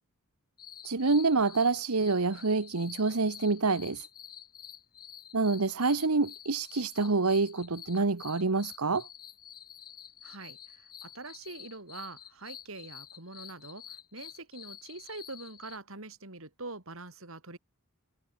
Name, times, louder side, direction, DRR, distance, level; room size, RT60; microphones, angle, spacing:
sound 1, 0.6-15.8, left 10 dB, 40° left, 4.5 m, -49 dB
voice 1, 0.8-4.0 5.3-9.1, right 3 dB, 85° right, 1.2 m, -27 dB
voice 2, 10.2-17.6, right 3 dB, 65° right, 4.5 m, -44 dB
head